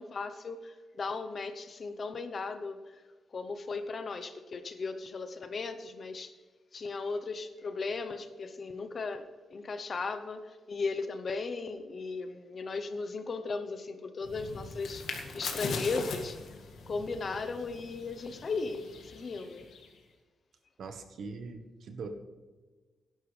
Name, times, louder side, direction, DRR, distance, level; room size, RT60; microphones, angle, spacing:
voice 1, 0.0-3.0 3.3-6.3 6.7-9.2 9.5-15.0 15.3-16.4 16.9-19.7, left 4 dB, 40° left, 10 dB, 0.8 m, -36 dB
sound 1, 14.2-20.0, left 4 dB, 85° left, 2.0 m, -41 dB
voice 2, 20.8-22.1, right 4 dB, 60° right, 6 dB, 1.3 m, -42 dB
17.0 x 11.0 x 3.3 m, 1.3 s
wide cardioid pair, 175°, 0 cm